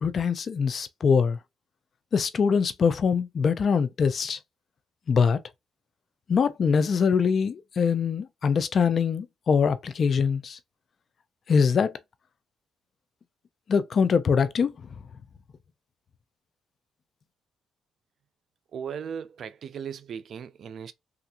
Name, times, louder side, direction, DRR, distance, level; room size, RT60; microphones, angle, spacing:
voice 1, 0.0-1.4 2.1-4.4 5.1-5.4 6.3-10.6 11.5-11.9 13.7-14.7, left 6 dB, 50° left, 0.4 m, -23 dB
voice 2, 18.7-20.9, right 7 dB, 60° right, 0.4 m, -37 dB
3.2 x 2.4 x 2.8 m
cardioid pair, 90°, 0 cm